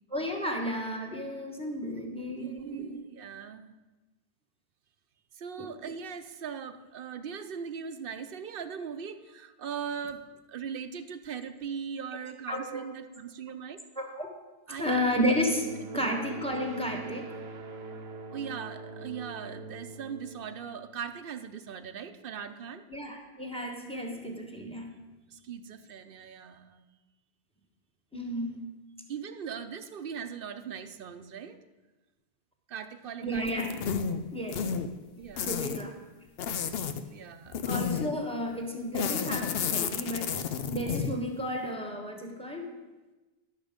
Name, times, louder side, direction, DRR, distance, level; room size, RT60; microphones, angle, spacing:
voice 1, 0.1-2.9 5.6-5.7 12.5-12.8 14.0-14.3 14.8-15.7 15.9-17.3 22.9-24.9 28.1-28.7 33.2-33.7 34.3-34.7 35.4-35.9 37.7-40.4 40.7-42.7, equal, 5° left, 2 dB, 1.2 m, -32 dB
voice 2, 2.2-3.7 5.3-13.8 14.7-15.1 15.9-16.2 18.3-22.8 25.3-26.8 29.1-31.6 32.7-33.6 35.2-35.6 37.1-37.6, right 7 dB, 65° right, 10 dB, 0.8 m, -40 dB
sound 1, 14.8-21.4, right 3 dB, 90° right, 1.1 m, -44 dB
sound 2, 33.5-34.2 34.5-34.9 35.4-35.8 36.4-37.0 37.5-38.2 38.9-41.2, left 7 dB, 70° left, 0.8 m, -31 dB
11.5 x 6.6 x 5.1 m, 1.2 s
omnidirectional pair, 1.0 m